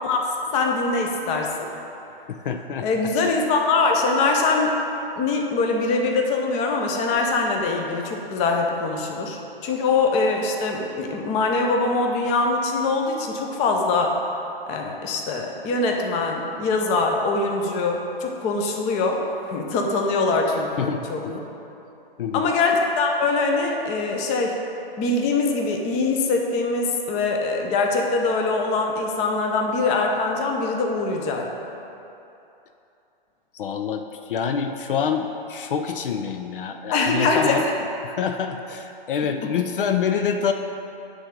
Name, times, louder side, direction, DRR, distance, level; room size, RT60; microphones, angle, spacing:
voice 1, 0.0-1.5 2.8-4.7 5.2-14.2 14.7-19.2 19.5-21.4 22.3-24.5 25.0-31.5 36.9-37.6, left 3 dB, 25° left, 2 dB, 0.7 m, -23 dB
voice 2, 2.3-2.9 20.8-21.3 22.2-22.5 33.5-37.7 38.0-40.5, left 7 dB, 65° left, 6 dB, 0.5 m, -26 dB
9.9 x 3.4 x 5.2 m, 2.8 s
hypercardioid pair, 130°, 29 cm